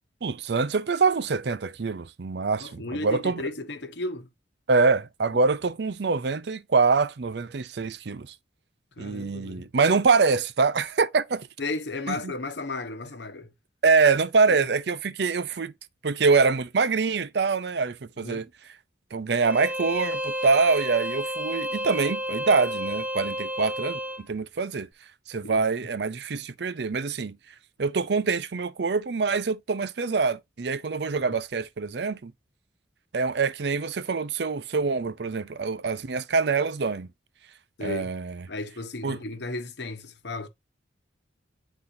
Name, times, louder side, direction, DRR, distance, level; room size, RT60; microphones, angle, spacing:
voice 1, 0.2-3.4 4.7-8.3 9.0-11.5 12.1-12.3 13.8-15.7 16.0-18.5 19.1-24.9 25.3-27.4 27.8-32.3 33.1-37.1 37.8-38.3 39.0-39.2, right 4 dB, 60° right, 0.5 m, -25 dB
voice 2, 2.6-4.3 9.0-9.7 11.6-13.5 14.5-14.6 18.2-18.4 25.4-25.7 31.3-31.4 37.8-38.1 38.5-40.5, left 2 dB, 65° left, 1.0 m, -34 dB
Bowed string instrument, 19.4-24.2, equal, 5° right, 0.7 m, -31 dB
10.0 x 4.0 x 2.7 m
head